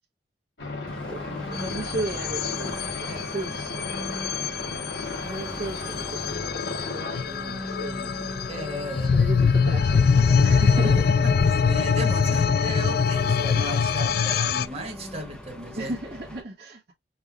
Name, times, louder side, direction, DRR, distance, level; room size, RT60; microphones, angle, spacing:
sound 1, 0.6-7.2, left 3 dB, 85° left, 2.5 m, -35 dB
Engine, 0.9-16.4, left 1 dB, 5° left, 0.8 m, -40 dB
voice 1, 1.1-3.9 4.4-8.4 8.9-11.2 12.7-13.1 15.8-16.9, right 2 dB, 65° right, 1.3 m, -36 dB
sound 2, 1.6-14.7, left 6 dB, 60° left, 0.4 m, -23 dB
voice 2, 8.5-9.3 11.6-15.9, equal, 35° right, 1.4 m, -35 dB
5.6 x 2.6 x 3.0 m
head